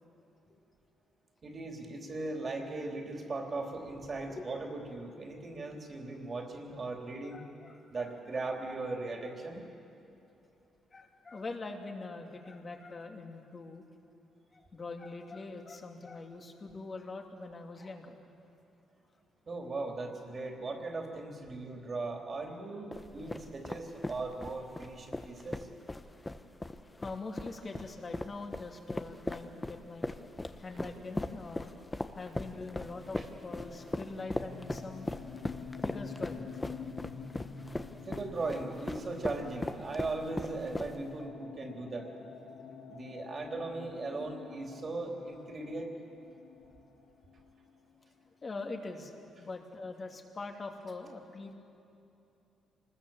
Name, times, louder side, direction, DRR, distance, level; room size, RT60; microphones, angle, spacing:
voice 1, 1.4-7.4 7.9-9.6 19.5-25.7 33.2-33.3 38.0-42.1 42.9-45.9, right 3 dB, 40° right, 2 dB, 3.5 m, -38 dB
voice 2, 7.3-8.2 9.2-9.3 10.9-13.8 14.5-18.2 27.0-30.1 30.6-31.7 32.2-35.1 35.8-36.4 48.4-49.1 49.4-51.5, left 3 dB, 35° left, 3 dB, 2.6 m, -43 dB
sound 1, 22.9-41.2, left 2 dB, 15° left, 1.1 m, -39 dB
sound 2, 32.4-48.0, left 5 dB, 85° left, 2.2 m, -48 dB
25.0 x 20.5 x 7.3 m, 2.7 s
cardioid pair, 90°, 0 cm